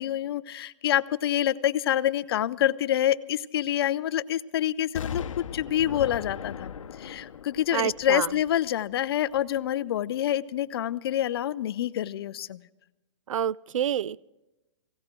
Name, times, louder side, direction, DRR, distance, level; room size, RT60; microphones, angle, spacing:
voice 1, 0.0-6.7 7.0-12.6, left 11 dB, 50° left, 17 dB, 0.5 m, -27 dB
Explosion, 5.0-8.9 9.3-9.4, left 7 dB, 80° left, 0.8 m, -38 dB
voice 2, 7.7-8.3 13.3-14.2, right 9 dB, 80° right, 22 dB, 0.4 m, -28 dB
19.5 x 17.0 x 3.8 m, 1.0 s
hypercardioid pair, 155°, 16 cm